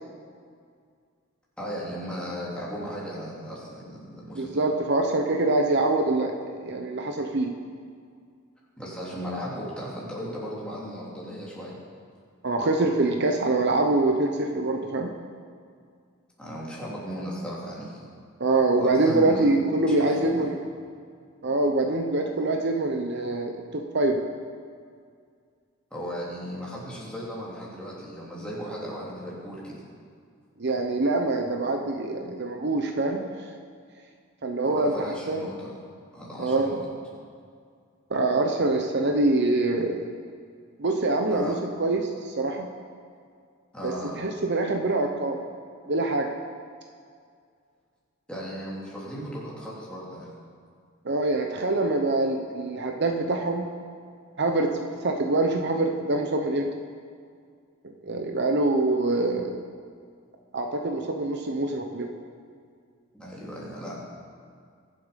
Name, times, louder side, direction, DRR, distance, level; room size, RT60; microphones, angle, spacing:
voice 1, 1.6-4.6 8.8-11.7 16.4-18.1 18.8-20.4 25.9-29.8 34.6-35.7 36.1-36.9 41.3-41.6 43.7-44.2 48.3-50.3 63.1-63.9, equal, 5° left, -7 dB, 3.2 m, -36 dB
voice 2, 4.4-6.3 6.6-7.5 12.4-15.1 18.4-20.6 21.4-24.2 30.6-33.3 34.4-34.9 35.3-35.4 36.4-36.7 38.1-40.0 40.8-41.5 41.8-42.7 43.8-43.9 44.2-45.4 45.9-46.3 51.0-53.7 54.4-56.7 58.0-59.6 60.5-62.1, right 2 dB, 55° right, 3 dB, 0.9 m, -24 dB
22.5 x 7.8 x 5.2 m, 2.2 s
head